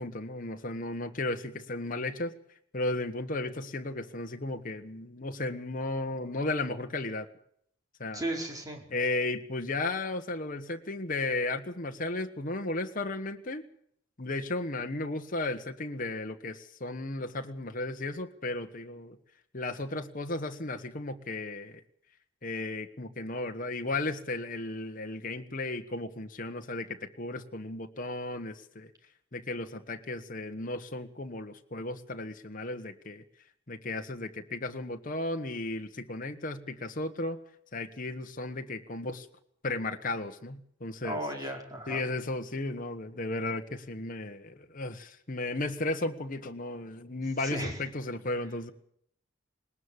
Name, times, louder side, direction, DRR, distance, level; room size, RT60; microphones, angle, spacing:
voice 1, 0.0-2.3 2.7-7.3 8.0-8.2 8.9-13.6 14.2-19.2 19.5-21.8 22.4-28.9 29.3-33.2 33.7-37.4 37.7-39.3 39.6-41.2 41.9-48.7, left 2 dB, 45° left, 5 dB, 1.4 m, -34 dB
voice 2, 8.1-8.9 41.0-42.0 47.4-47.8, right 1 dB, 20° right, 2 dB, 4.8 m, -35 dB
20.0 x 19.5 x 8.2 m, 0.68 s
head